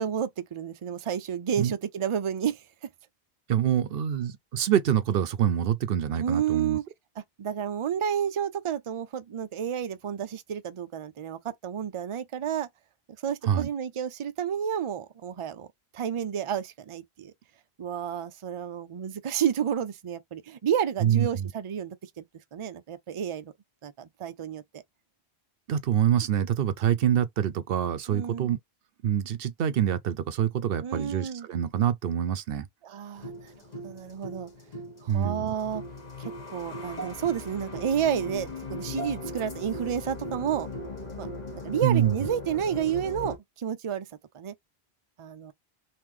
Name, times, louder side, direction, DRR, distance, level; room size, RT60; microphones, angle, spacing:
voice 1, 0.0-2.6 6.1-6.8 7.4-12.7 13.2-15.7 15.9-17.3 17.8-22.2 22.5-23.5 23.8-24.8 28.1-28.5 30.8-31.5 32.8-33.3 33.8-34.5 35.0-35.8 36.2-40.7 41.2-41.3 41.6-44.1 44.3-44.5 45.2-45.5, right 8 dB, 45° right, 0.4 m, -30 dB
voice 2, 3.5-6.8 13.4-13.7 21.0-21.5 25.7-28.6 29.0-32.7 35.1-35.5 41.8-42.1, right 9 dB, 70° right, 0.7 m, -26 dB
sound 1, 33.2-43.4, left 2 dB, 40° left, 1.4 m, -38 dB
3.6 x 2.8 x 3.1 m
omnidirectional pair, 1.1 m